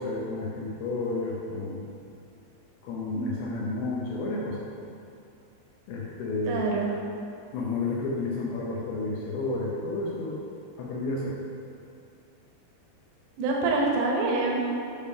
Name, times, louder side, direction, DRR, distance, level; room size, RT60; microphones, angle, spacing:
voice 1, 0.0-1.8 2.8-4.6 5.9-6.6 7.5-10.5 10.8-11.4, left 2 dB, 90° left, -4 dB, 2.1 m, -31 dB
voice 2, 6.5-7.0 13.4-14.6, right 3 dB, 75° right, -2 dB, 2.7 m, -26 dB
8.6 x 3.5 x 5.4 m, 2.5 s
omnidirectional pair, 5.5 m